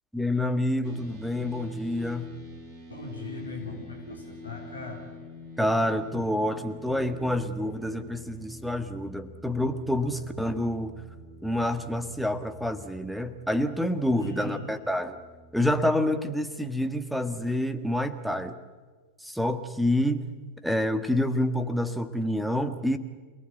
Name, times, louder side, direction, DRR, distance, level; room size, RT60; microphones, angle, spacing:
voice 1, 0.1-2.3 5.6-10.9 11.4-15.2 15.5-18.5 19.2-20.2 20.6-23.0, left 1 dB, ahead, 10 dB, 1.7 m, -27 dB
sound 1, 0.8-15.9, left 1 dB, 30° right, 4.7 m, -47 dB
voice 2, 2.9-5.0 10.1-10.3 14.1-14.7, left 2 dB, 75° left, 1 dB, 4.0 m, -39 dB
28.0 x 18.5 x 8.0 m, 1.4 s
figure-of-eight pair, 90°, 0 cm